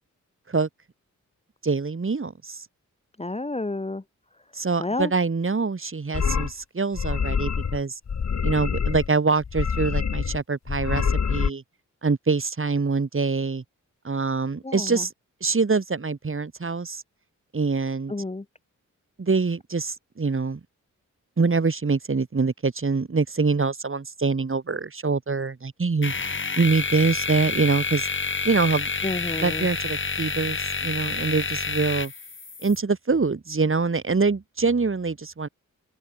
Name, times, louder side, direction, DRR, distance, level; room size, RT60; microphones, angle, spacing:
voice 1, 1.6-2.7 4.5-8.0 8.4-11.6 12.0-13.6 14.0-15.1 15.4-17.0 17.5-18.1 19.2-20.6 21.4-26.1 26.6-28.1 28.4-28.9 29.4-32.1 32.6-35.5, right 4 dB, 40° right, 5.4 m, -24 dB
voice 2, 3.2-4.0 4.8-5.1 14.6-15.0 18.1-18.4 29.0-29.7, left 2 dB, 20° left, 1.7 m, -30 dB
sound 1, 6.1-6.5 6.9-7.8 8.1-9.1 9.4-10.4 10.7-11.5, left 6 dB, 60° left, 2.4 m, -25 dB
sound 2, 26.0-32.8, left 4 dB, 40° left, 2.4 m, -29 dB
open air
wide cardioid pair, 90°, 31 cm